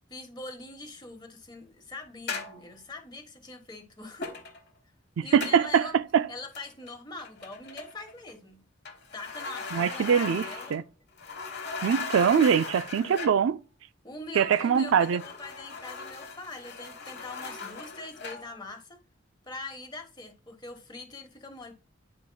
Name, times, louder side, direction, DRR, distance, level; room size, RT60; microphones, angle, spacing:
voice 1, 0.1-4.3 5.2-6.0 6.3-8.6 9.1-10.8 14.0-19.0 19.4-21.8, left 2 dB, 25° left, 1.2 m, -43 dB
sound 1, 2.3-2.7 4.2-4.7 5.4-5.7 6.5-6.9 7.2-8.3 8.8-10.9 11.2-13.5 14.4-18.5, left 4 dB, 60° left, 1.2 m, -39 dB
voice 2, 5.2-5.9 6.1-6.3 9.7-10.4 10.7-10.8 11.8-13.6 14.3-15.2, right 7 dB, 80° right, 0.4 m, -23 dB
9.5 x 5.1 x 2.3 m
head